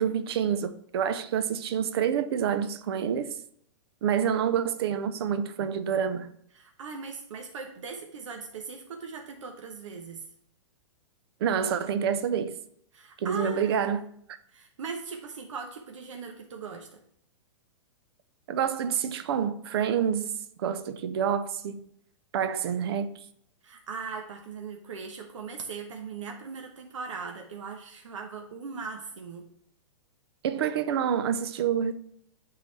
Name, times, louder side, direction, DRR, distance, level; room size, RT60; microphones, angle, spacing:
voice 1, 0.0-3.4 4.0-6.3 11.4-12.6 13.2-14.0 18.5-20.3 20.6-21.8 22.3-23.1 30.4-31.9, right 8 dB, 55° right, 0.6 m, -27 dB
voice 2, 6.5-10.2 12.9-14.0 14.5-17.0 23.6-29.4, right 5 dB, 80° right, 1.0 m, -39 dB
11.0 x 3.9 x 3.2 m
hypercardioid pair, 165°, 16 cm